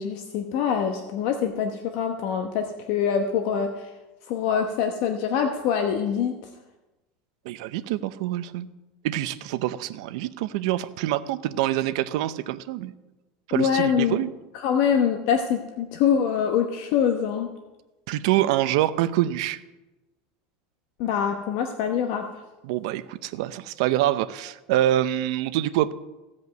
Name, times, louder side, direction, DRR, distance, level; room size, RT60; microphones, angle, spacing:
voice 1, 0.0-3.9 4.3-6.3 13.5-14.2 14.5-17.5 21.0-22.3, left 7 dB, 55° left, 5 dB, 1.0 m, -24 dB
voice 2, 7.5-8.7 9.0-12.9 13.5-14.3 18.1-19.6 22.6-25.9, right 13 dB, 70° right, 13 dB, 0.6 m, -25 dB
15.5 x 5.3 x 8.1 m, 1.1 s
supercardioid pair, 160°, 3 cm